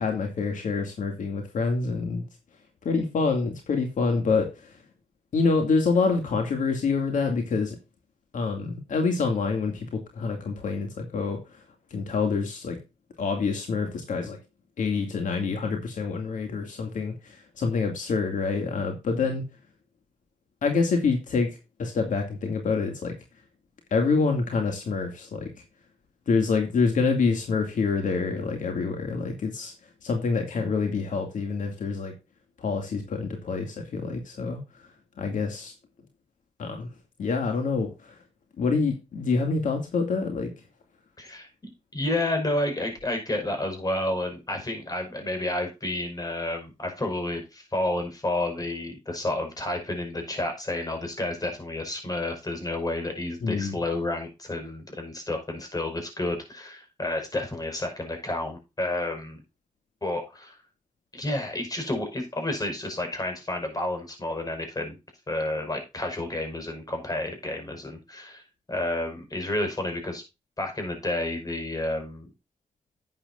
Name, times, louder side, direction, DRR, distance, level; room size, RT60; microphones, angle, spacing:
voice 1, 0.0-2.2 2.8-4.8 5.3-7.8 8.3-11.6 11.9-12.8 13.2-14.4 14.8-19.4 20.6-21.5 21.8-23.1 23.9-25.5 26.3-29.7 30.0-32.1 32.6-34.6 35.2-35.7 36.6-36.9 37.2-38.2 38.6-40.5 53.4-53.8, left 4 dB, 80° left, 4 dB, 2.4 m, -26 dB
voice 2, 41.2-59.4 60.0-60.6 61.1-65.0 65.3-68.4 68.7-70.2 70.6-72.3, left 1 dB, 30° left, 4 dB, 5.5 m, -30 dB
11.5 x 9.0 x 2.6 m, 0.26 s
cardioid pair, 80°, 13 cm